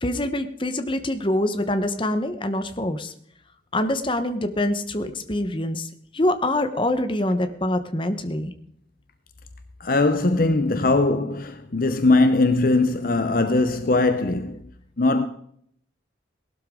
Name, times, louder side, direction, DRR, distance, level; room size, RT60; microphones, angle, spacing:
voice 1, 0.0-3.1 3.7-8.5, left 1 dB, 25° left, 1.1 m, -25 dB
voice 2, 9.8-14.6 15.0-15.3, left 2 dB, 50° left, 0.8 m, -20 dB
18.5 x 12.5 x 3.8 m
head